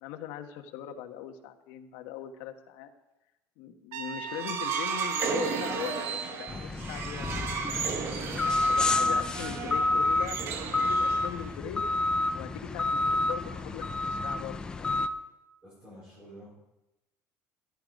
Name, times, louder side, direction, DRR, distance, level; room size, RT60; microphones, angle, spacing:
voice 1, 0.0-2.9 3.6-8.2 8.7-11.8 12.3-15.0, left 11 dB, 80° left, 5 dB, 1.3 m, -40 dB
Trumpet, 3.9-6.2, right 9 dB, 90° right, 1.2 m, -39 dB
sound 1, 4.3-11.6, right 6 dB, 40° right, 1.1 m, -34 dB
sound 2, 6.5-15.1, left 2 dB, 15° left, 0.5 m, -29 dB
voice 2, 15.6-16.5, equal, 20° right, -7 dB, 4.6 m, -49 dB
12.5 x 12.0 x 5.3 m, 0.99 s
cardioid pair, 175°, 6 cm